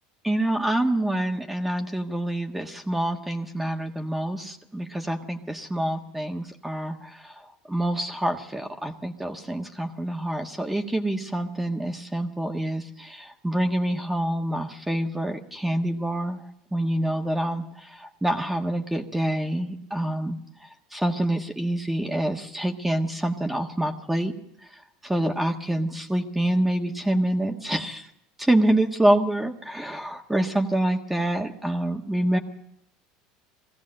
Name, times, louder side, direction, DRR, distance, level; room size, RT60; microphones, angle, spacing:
voice 1, 0.2-7.4 7.7-16.4 16.7-20.4 20.9-24.3 25.0-28.1 28.4-32.4, right 1 dB, 5° right, 4 dB, 1.5 m, -26 dB
21.0 x 16.0 x 7.8 m, 0.77 s
supercardioid pair, 115°, 3 cm